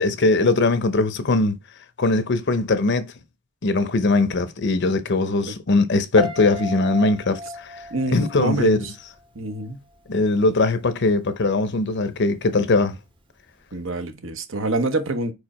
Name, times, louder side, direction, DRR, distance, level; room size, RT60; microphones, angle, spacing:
voice 1, 0.0-1.6 2.0-3.1 3.6-7.7 8.1-8.8 10.1-13.0, left 2 dB, 55° left, 0.7 m, -20 dB
Piano, 6.2-9.3 9.5-10.0, equal, 25° right, 0.8 m, -35 dB
voice 2, 7.9-8.9 9.3-9.8 13.7-15.3, right 2 dB, 65° right, 1.0 m, -26 dB
4.9 x 4.8 x 4.2 m
head